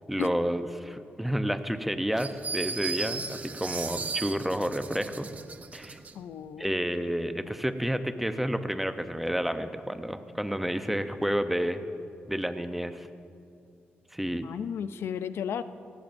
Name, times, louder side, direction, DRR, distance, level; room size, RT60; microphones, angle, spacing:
voice 1, 0.1-5.3 5.7-6.0 6.6-11.8 12.3-13.1 14.1-14.5, equal, 5° right, 9 dB, 0.7 m, -30 dB
sound 1, 2.2-6.1, right 5 dB, 40° right, 0.7 m, -36 dB
voice 2, 6.1-6.9 7.4-7.5 14.4-15.6, left 8 dB, 75° left, 12 dB, 0.5 m, -34 dB
22.0 x 18.0 x 2.6 m, 2.5 s
cardioid pair, 105°, 4 cm